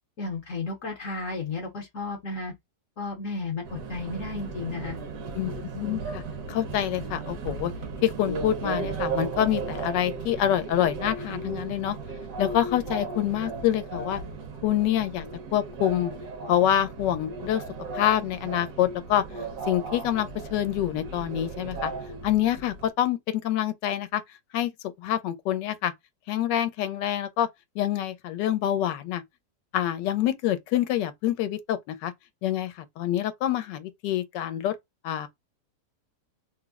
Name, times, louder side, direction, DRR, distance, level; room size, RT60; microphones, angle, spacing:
voice 1, 0.2-2.5 3.0-5.0, left 3 dB, 55° left, 1.0 m, -33 dB
Subway metro underground, 3.6-22.9, right 4 dB, 60° right, 1.0 m, -36 dB
voice 2, 5.3-6.2 6.5-7.7 8.0-12.0 12.4-14.2 14.6-15.3 15.5-16.1 16.5-17.6 17.9-19.2 19.7-21.9 22.2-24.2 24.5-24.7 25.0-25.9 26.3-27.5 27.8-29.2 29.7-32.1 32.4-34.7 35.0-35.3, left 11 dB, 85° left, 1.2 m, -26 dB
3.4 x 2.0 x 3.3 m
omnidirectional pair, 1.9 m